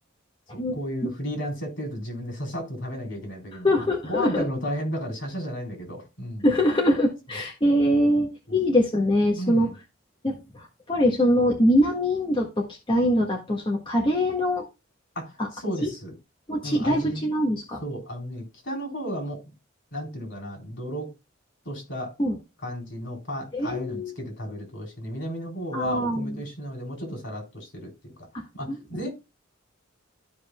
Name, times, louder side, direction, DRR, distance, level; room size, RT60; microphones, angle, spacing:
voice 1, 0.5-6.4 7.3-7.4 9.4-9.7 15.2-16.1 16.6-17.2 17.8-19.4 19.9-21.1 21.7-22.1 22.6-28.1 28.5-29.1, equal, 65° left, 1 dB, 3.8 m, -33 dB
voice 2, 3.6-4.4 6.4-9.7 10.2-14.6 15.8-15.9 16.5-17.8 22.2-22.3 23.5-24.1 25.7-26.3, equal, 25° left, -2 dB, 1.7 m, -23 dB
14.0 x 5.2 x 2.2 m, 0.26 s
head